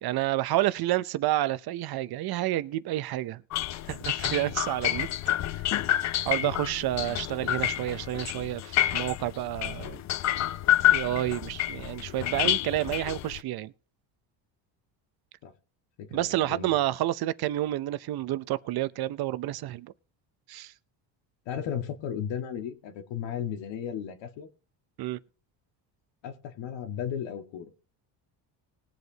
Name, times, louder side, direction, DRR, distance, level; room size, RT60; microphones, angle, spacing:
voice 1, 0.0-3.4 3.9-5.1 6.2-10.0 10.9-13.7 16.1-19.9 20.5-20.7 25.0-25.2, right 14 dB, 55° right, 0.7 m, -29 dB
sound 1, 3.5-13.4, left 13 dB, 40° left, 0.4 m, -28 dB
voice 2, 16.0-16.8 21.5-24.5 26.2-27.7, left 9 dB, 70° left, 1.9 m, -35 dB
20.5 x 8.1 x 2.9 m
cardioid pair, 130°, 46 cm